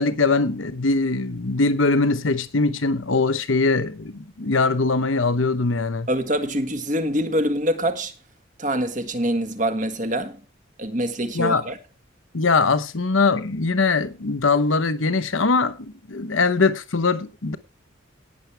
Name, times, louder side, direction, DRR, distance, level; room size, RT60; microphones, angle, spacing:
voice 1, 0.0-6.1 11.3-11.6 12.3-17.6, left 3 dB, 85° left, 1.0 m, -21 dB
voice 2, 6.1-8.1 8.6-10.4 10.8-11.8, equal, 40° right, 1.6 m, -24 dB
18.5 x 7.3 x 3.4 m
head